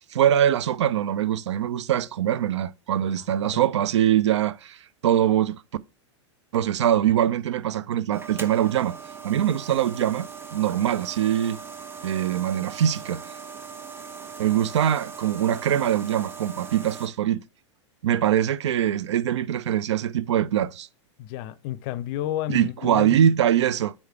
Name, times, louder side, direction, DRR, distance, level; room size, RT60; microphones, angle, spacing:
voice 1, 0.1-5.6 6.5-9.0 9.2-11.6 12.0-13.4 14.4-17.4 18.0-20.9 22.5-23.9, right 10 dB, 65° right, 0.4 m, -23 dB
voice 2, 3.0-3.6 21.2-23.2, left 13 dB, 45° left, 0.5 m, -32 dB
sound 1, 8.1-17.1, right 6 dB, 15° right, 0.7 m, -40 dB
4.8 x 4.2 x 5.6 m
figure-of-eight pair, 95°, 16 cm